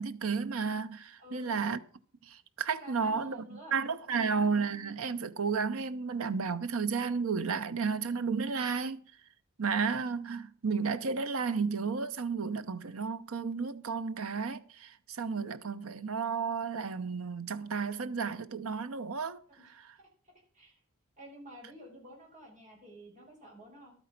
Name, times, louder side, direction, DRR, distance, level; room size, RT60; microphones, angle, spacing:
voice 1, 0.0-1.8 2.2-9.1 9.6-19.4, right 5 dB, 80° right, 0.8 m, -32 dB
voice 2, 1.2-1.6 2.8-4.3 19.6-20.1 20.5-20.8 21.2-23.9, equal, 35° right, 5.3 m, -51 dB
12.0 x 9.0 x 5.9 m
head